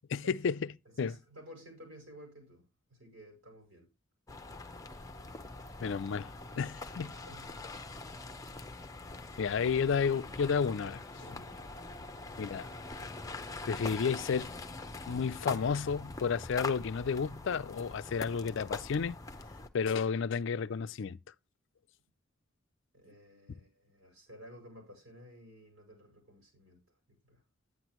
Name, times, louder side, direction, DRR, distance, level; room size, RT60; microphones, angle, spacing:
voice 1, 0.1-1.2 5.8-6.3 6.6-7.1 9.4-11.0 12.4-12.7 13.7-14.5 15.1-19.2 19.7-21.2, left 6 dB, 65° left, 0.4 m, -31 dB
voice 2, 0.9-2.6 2.9-3.9 7.0-7.5 11.2-11.5 22.9-26.8 27.2-27.4, equal, 80° right, 5.2 m, -54 dB
sound 1, 4.3-19.7, left 3 dB, 15° left, 0.7 m, -43 dB
9.9 x 9.5 x 3.0 m
head